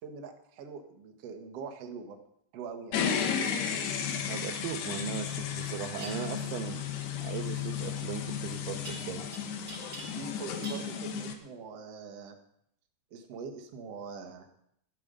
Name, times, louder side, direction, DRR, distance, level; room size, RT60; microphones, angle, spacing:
voice 1, 0.0-2.2 2.5-3.0 10.1-12.4 13.1-14.5, right 5 dB, 65° right, 3 dB, 1.5 m, -43 dB
sound 1, 2.9-11.3, left 7 dB, 70° left, 3.1 m, -34 dB
voice 2, 4.3-6.9 7.2-9.3, right 11 dB, 90° right, 6 dB, 2.3 m, -38 dB
sound 2, 5.9-6.2 8.9-9.4 9.7-10.3 10.6-10.9, right 2 dB, 30° right, 2.8 m, -44 dB
14.0 x 12.0 x 5.4 m, 0.72 s
omnidirectional pair, 5.4 m